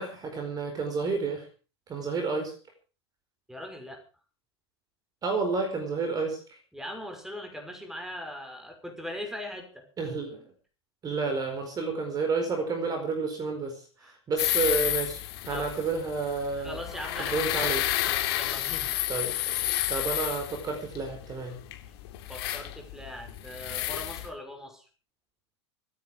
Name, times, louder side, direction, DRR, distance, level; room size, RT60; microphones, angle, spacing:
voice 1, 0.0-1.5 1.9-2.5 5.2-6.6 10.0-10.5 11.0-16.8 17.2-17.8 19.1-19.5 19.9-21.6, right 4 dB, 25° right, 4 dB, 4.7 m, -30 dB
voice 2, 3.5-4.0 6.7-10.1 14.0-14.2 15.5-15.8 16.6-19.0 22.3-24.9, left 1 dB, 5° right, 4 dB, 6.0 m, -40 dB
sound 1, 14.4-24.3, left 14 dB, 60° left, 3.4 m, -31 dB
25.5 x 9.9 x 4.9 m, 0.37 s
hypercardioid pair, 100°, 14 cm